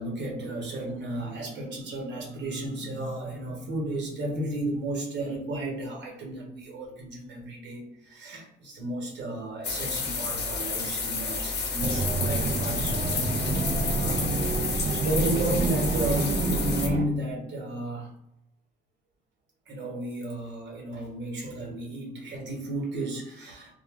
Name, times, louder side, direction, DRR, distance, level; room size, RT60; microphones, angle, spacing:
voice 1, 0.0-13.2 13.6-18.1 19.7-23.7, right 1 dB, 65° right, -1 dB, 1.1 m, -33 dB
sound 1, 9.6-16.9, left 4 dB, 55° left, 0.8 m, -31 dB
sound 2, 11.8-17.1, right 3 dB, 40° right, 0.4 m, -28 dB
2.2 x 2.1 x 3.5 m, 0.86 s
cardioid pair, 90°, 20 cm